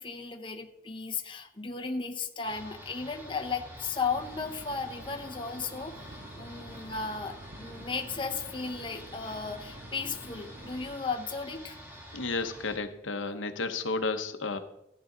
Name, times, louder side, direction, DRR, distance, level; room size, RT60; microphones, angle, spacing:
voice 1, 0.0-11.8, left 4 dB, 25° left, 3 dB, 0.9 m, -35 dB
sound 1, 2.4-12.8, equal, 10° right, 2.0 m, -48 dB
sound 2, 4.1-11.0, right 1 dB, 50° right, 1.3 m, -49 dB
voice 2, 12.1-14.6, left 3 dB, 85° left, 8 dB, 1.0 m, -32 dB
15.0 x 9.7 x 3.9 m, 0.87 s
head